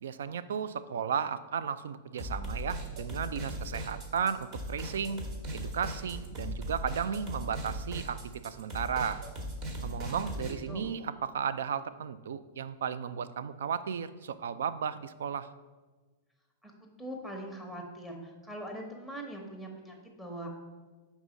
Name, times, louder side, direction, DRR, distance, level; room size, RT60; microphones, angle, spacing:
voice 1, 0.0-5.2 5.5-9.2 9.8-15.5, right 7 dB, 85° right, 14 dB, 0.3 m, -34 dB
sound 1, 2.2-10.5, equal, 40° right, 1.3 m, -38 dB
voice 2, 9.8-10.9 16.6-16.7 17.0-20.5, right 1 dB, 5° right, 1 dB, 1.0 m, -42 dB
5.4 x 3.6 x 5.1 m, 1.3 s
hypercardioid pair, 130°, 0 cm